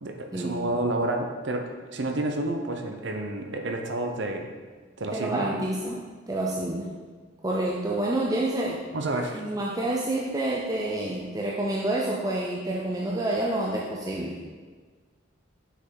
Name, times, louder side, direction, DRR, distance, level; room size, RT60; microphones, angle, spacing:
voice 1, 0.0-4.5 5.0-5.6 8.9-9.4, right 2 dB, 70° right, 4 dB, 0.7 m, -30 dB
voice 2, 5.1-6.0 6.3-6.9 7.4-8.8 9.3-14.4, right 1 dB, 20° right, -3 dB, 0.5 m, -28 dB
6.5 x 5.4 x 3.8 m, 1.5 s
head